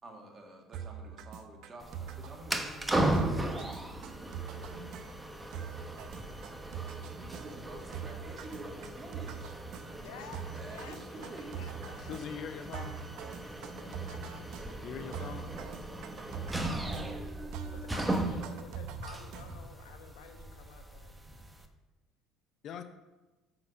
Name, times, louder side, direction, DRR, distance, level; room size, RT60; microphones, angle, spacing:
voice 1, 0.0-4.6 5.5-6.1 7.2-9.6 9.9-11.9 18.4-18.6, right 2 dB, 35° right, 2 dB, 2.0 m, -49 dB
sound 1, 0.7-19.8, right 8 dB, 70° right, 0.6 m, -44 dB
sound 2, 1.8-21.7, right 1 dB, 10° right, 1.0 m, -37 dB
voice 2, 10.0-12.3 13.7-14.5 16.5-17.2 17.7-21.1, left 7 dB, 85° left, 6 dB, 1.1 m, -52 dB
voice 3, 12.0-13.0 14.8-15.5 22.6-22.8, left 7 dB, 55° left, 9 dB, 0.7 m, -41 dB
6.3 x 5.9 x 6.9 m, 1.1 s
supercardioid pair, 85°, 0 cm